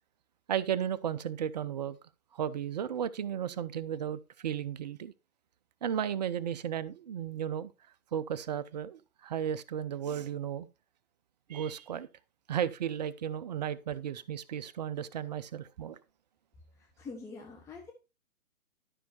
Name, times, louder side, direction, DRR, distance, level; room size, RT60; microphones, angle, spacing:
voice 1, 0.5-2.0 2.3-5.1 5.8-7.7 8.1-10.7 11.5-12.1 12.5-16.0, right 9 dB, 30° right, 0.6 m, -34 dB
voice 2, 16.8-17.9, left 4 dB, 5° left, 0.9 m, -45 dB
12.0 x 5.6 x 4.3 m
hypercardioid pair, 135°, 42 cm